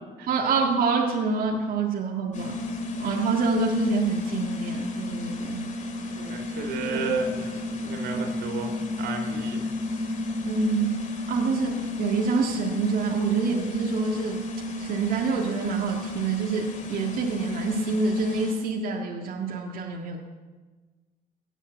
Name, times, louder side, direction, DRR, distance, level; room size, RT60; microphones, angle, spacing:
voice 1, 0.3-2.6 3.0-5.6 6.9-7.2 8.1-8.3 10.5-11.0 11.3-14.4 14.8-20.2, right 4 dB, 55° right, -1 dB, 1.9 m, -26 dB
sound 1, 2.3-18.5, left 3 dB, 45° left, 2.4 m, -32 dB
voice 2, 6.1-9.7, right 4 dB, 85° right, 4 dB, 3.2 m, -32 dB
17.0 x 9.0 x 7.9 m, 1.3 s
cardioid pair, 110°, 17 cm